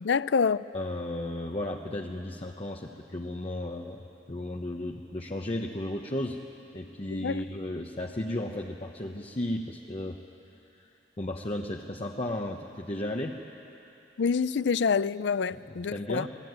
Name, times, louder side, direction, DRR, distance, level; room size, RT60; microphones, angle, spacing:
voice 1, 0.0-0.6 7.1-7.4 14.2-16.3, left 5 dB, 75° left, 0.5 m, -27 dB
voice 2, 0.7-6.4 6.7-10.2 10.7-10.9 11.2-13.4 15.5-16.3, left 1 dB, 35° left, 1.0 m, -34 dB
28.0 x 19.0 x 9.5 m
head